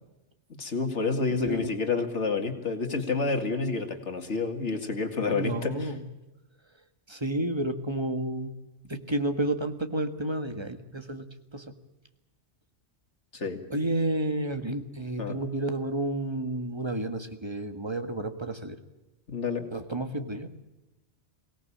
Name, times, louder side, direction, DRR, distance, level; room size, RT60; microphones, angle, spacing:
voice 1, 0.6-5.9 13.3-13.6 15.2-15.4 19.3-19.7 20.1-20.3, left 4 dB, 85° left, 5 dB, 2.4 m, -29 dB
voice 2, 1.4-1.8 5.3-6.0 7.1-8.5 8.9-11.2 11.5-11.6 13.7-18.8 19.7-20.5, right 1 dB, 25° right, 7 dB, 1.7 m, -31 dB
24.0 x 18.0 x 8.6 m, 1.0 s
omnidirectional pair, 1.2 m